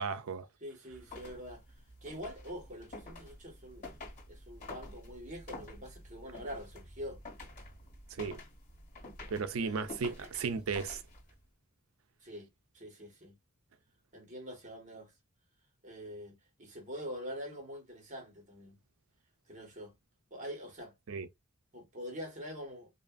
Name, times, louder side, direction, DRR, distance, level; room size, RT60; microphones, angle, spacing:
voice 1, 0.0-0.5 8.1-8.4 9.3-11.0 21.1-21.3, right 5 dB, 90° right, 0.5 m, -35 dB
voice 2, 0.6-1.6 2.0-4.0 4.3-7.2 9.6-10.6 12.2-12.5 12.7-13.4 14.1-15.1 15.8-18.8 19.5-19.9 20.3-20.9 21.7-22.9, equal, 35° right, 1.2 m, -45 dB
sound 1, 0.9-11.4, left 2 dB, 40° left, 1.8 m, -49 dB
2.8 x 2.5 x 2.3 m
head